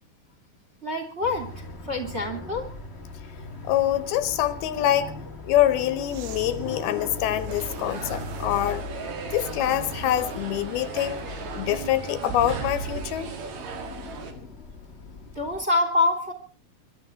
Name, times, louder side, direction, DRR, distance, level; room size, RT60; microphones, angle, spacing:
voice 1, 0.8-1.5 1.9-2.7 15.3-16.3, left 2 dB, 20° right, 6 dB, 2.5 m, -25 dB
sound 1, 1.2-15.6, left 3 dB, 35° left, 1.0 m, -39 dB
voice 2, 3.6-5.1 5.4-8.8 9.3-11.2 11.5-13.3, left 12 dB, 80° left, 14 dB, 3.0 m, -25 dB
sound 2, 6.1-8.8 9.5-9.6 12.3-13.5 15.3-15.4, right 8 dB, 80° right, 3.3 m, -40 dB
sound 3, 7.5-14.3, right 6 dB, 55° right, 3.0 m, -38 dB
24.0 x 12.0 x 4.6 m, 0.36 s
omnidirectional pair, 4.4 m